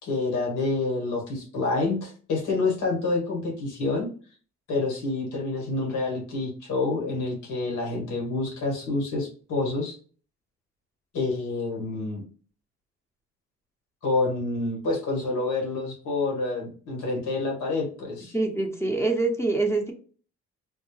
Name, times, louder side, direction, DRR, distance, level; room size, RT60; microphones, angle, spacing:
voice 1, 0.0-4.1 4.7-10.0 11.1-12.2 14.0-18.3, left 3 dB, 80° left, -2 dB, 1.8 m, -28 dB
voice 2, 18.3-19.9, right 3 dB, 10° left, 3 dB, 0.7 m, -25 dB
4.4 x 2.0 x 3.2 m, 0.41 s
cardioid pair, 90°, 30 cm